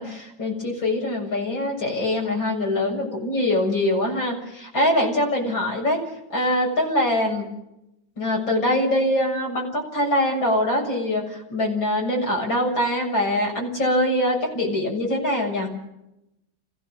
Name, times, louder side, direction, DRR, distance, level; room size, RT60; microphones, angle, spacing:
voice 1, 0.0-6.0 6.3-7.5 8.2-15.7, left 1 dB, 70° left, -1 dB, 7.9 m, -23 dB
29.0 x 16.5 x 7.8 m, 0.86 s
omnidirectional pair, 2.1 m